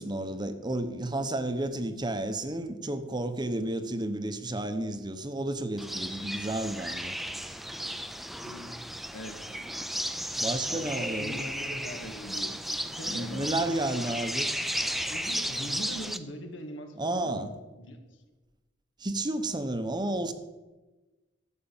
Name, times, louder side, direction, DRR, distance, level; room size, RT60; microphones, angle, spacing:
voice 1, 0.0-7.1 10.4-11.8 13.0-14.5 17.0-17.5 19.0-20.3, right 1 dB, 25° right, 0.9 m, -32 dB
sound 1, 5.8-16.2, equal, ahead, 0.6 m, -34 dB
voice 2, 8.4-8.8 9.1-9.4 10.7-13.5 15.1-18.0, equal, 80° left, 2.0 m, -41 dB
13.0 x 8.3 x 7.2 m
head